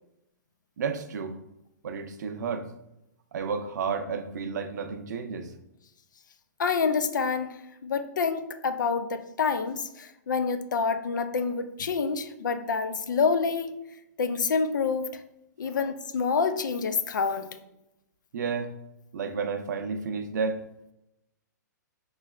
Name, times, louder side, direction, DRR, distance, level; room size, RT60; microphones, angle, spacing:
voice 1, 0.8-1.4 1.8-2.7 3.3-5.5 15.6-15.7 18.3-18.7 19.1-20.6, right 5 dB, 65° right, 7 dB, 0.5 m, -31 dB
voice 2, 6.6-7.5 7.8-13.7 14.2-15.2 15.6-17.5, left 5 dB, 80° left, 9 dB, 0.4 m, -27 dB
4.6 x 3.0 x 2.3 m, 0.87 s
hypercardioid pair, 130°, 10 cm